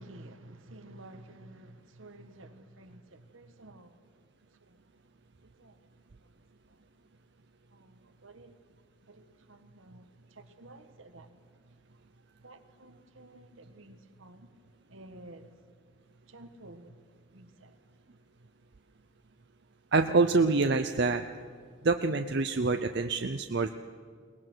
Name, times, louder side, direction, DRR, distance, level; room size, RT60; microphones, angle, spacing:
voice 1, 0.0-3.9 4.6-4.8 5.4-5.8 6.2-6.3 6.7-6.8 7.7-8.6 9.1-11.4 11.6-11.8 12.4-14.5 14.9-15.8 16.3-17.0 17.3-17.8, right 1 dB, 75° right, 1.4 m, -52 dB
voice 2, 19.9-21.2 21.8-23.7, right 3 dB, 55° right, 0.6 m, -26 dB
22.5 x 19.0 x 6.2 m
head